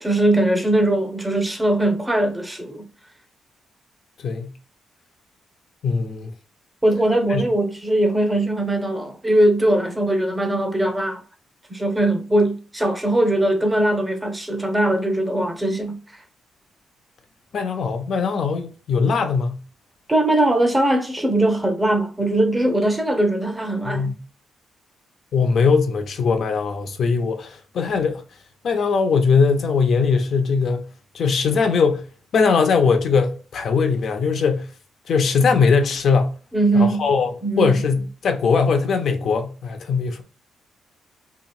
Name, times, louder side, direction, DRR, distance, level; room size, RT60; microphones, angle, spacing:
voice 1, 0.0-2.9 6.8-11.2 11.7-16.0 20.1-24.1 36.5-37.0 37.4-37.8, right 1 dB, 15° right, 0.8 m, -20 dB
voice 2, 5.8-6.3 7.3-7.4 17.5-19.6 23.8-24.2 25.3-28.2 28.6-30.9 31.1-32.0 32.3-34.7 35.1-36.3 36.7-37.3 37.6-40.2, left 5 dB, 65° left, 0.5 m, -20 dB
2.9 x 2.8 x 2.3 m
cardioid pair, 80°, 0 cm